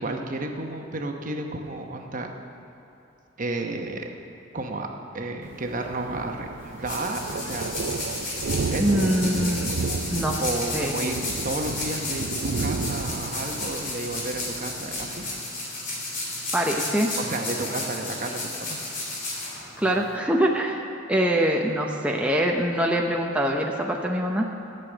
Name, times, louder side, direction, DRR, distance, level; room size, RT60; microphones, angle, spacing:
voice 1, 0.0-2.3 3.4-4.1 4.5-4.9 5.1-7.7 8.6-9.0 9.5-15.2 17.2-18.4, right 2 dB, 45° right, 3 dB, 1.0 m, -32 dB
Thunder, 5.4-15.4, right 4 dB, 70° right, 0.5 m, -32 dB
sound 1, 6.6-20.2, left 2 dB, 50° left, 3.2 m, -33 dB
voice 2, 8.8-9.7 10.1-10.4 10.7-11.0 16.5-17.1 19.8-20.8 21.1-24.5, equal, 5° right, 0 dB, 0.7 m, -24 dB
13.5 x 6.8 x 8.9 m, 2.9 s
head